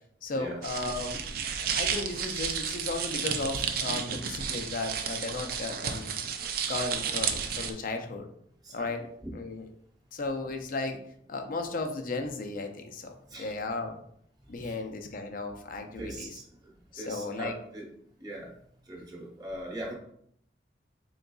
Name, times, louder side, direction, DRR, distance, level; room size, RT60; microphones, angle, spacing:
voice 1, 0.2-6.2 6.7-8.3 8.7-9.0 9.3-9.7 10.1-11.0 11.3-14.0 14.5-16.3 16.9-17.5, left 3 dB, 50° left, 5 dB, 0.5 m, -35 dB
sound 1, 0.6-7.7, right 7 dB, 55° right, 0.4 m, -32 dB
voice 2, 8.6-9.1 13.3-13.5 14.6-14.8 16.0-16.4 16.9-17.9 18.2-18.5 18.9-19.9, right 1 dB, 20° right, -2 dB, 1.0 m, -40 dB
3.9 x 3.8 x 2.3 m, 0.69 s
head